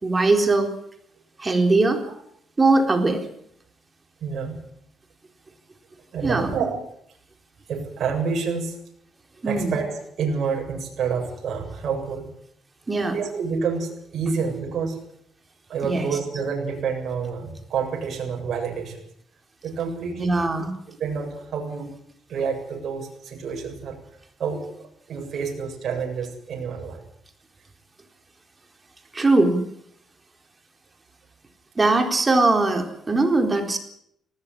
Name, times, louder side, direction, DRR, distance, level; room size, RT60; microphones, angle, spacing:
voice 1, 0.0-0.7 1.4-2.0 2.6-3.2 6.2-6.5 9.4-9.8 12.9-13.1 15.8-16.1 20.2-20.7 29.1-29.6 31.8-33.8, right 2 dB, 25° right, 5 dB, 4.0 m, -20 dB
voice 2, 4.2-4.6 6.1-6.7 7.7-8.8 9.4-12.3 13.1-15.0 15.7-19.0 19.6-20.3 21.0-21.9 22.3-23.9 24.4-24.6 25.1-27.0, right 5 dB, 60° right, 1 dB, 7.7 m, -28 dB
19.5 x 17.0 x 10.0 m, 0.72 s
cardioid pair, 90°, 0 cm